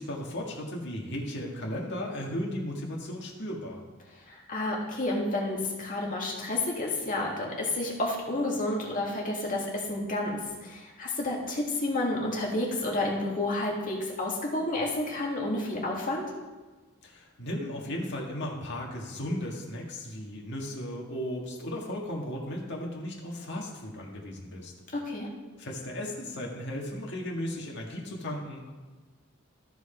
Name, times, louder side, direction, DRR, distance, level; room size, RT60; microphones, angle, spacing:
voice 1, 0.0-3.8 17.0-24.7 25.6-28.7, left 1 dB, 55° left, -1 dB, 1.7 m, -35 dB
voice 2, 4.3-16.2 24.9-25.3, left 2 dB, 40° left, -2 dB, 1.9 m, -30 dB
13.5 x 4.7 x 4.4 m, 1.3 s
head